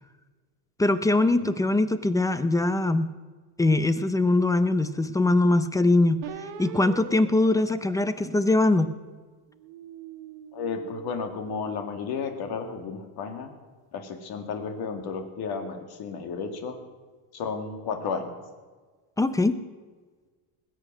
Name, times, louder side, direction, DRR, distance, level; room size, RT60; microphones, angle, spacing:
voice 1, 0.8-3.1 3.6-6.2 6.6-8.9 19.2-19.6, left 2 dB, 10° left, 12 dB, 0.4 m, -22 dB
sound 1, 6.2-8.9 9.5-12.0, right 10 dB, 80° right, 1.1 m, -43 dB
voice 2, 10.5-13.5 13.9-16.8 17.3-18.4, left 5 dB, 60° left, 6 dB, 2.2 m, -33 dB
20.0 x 8.1 x 6.2 m, 1.4 s
cardioid pair, 135°, 43 cm